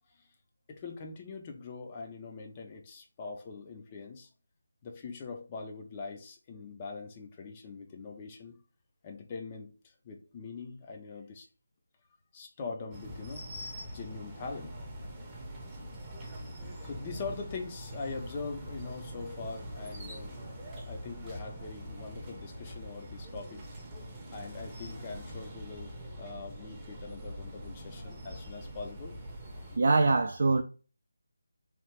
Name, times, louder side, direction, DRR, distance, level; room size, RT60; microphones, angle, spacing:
voice 1, 0.7-4.3 4.8-8.6 9.0-11.5 12.3-13.4 13.9-14.8 16.8-20.4 20.9-23.6 24.3-29.2, left 4 dB, 25° left, 0.5 m, -42 dB
sound 1, 12.9-29.8, equal, 15° right, 0.7 m, -43 dB
voice 2, 29.8-30.6, right 3 dB, 55° right, 0.4 m, -23 dB
3.1 x 2.3 x 3.2 m
figure-of-eight pair, 165°, 0 cm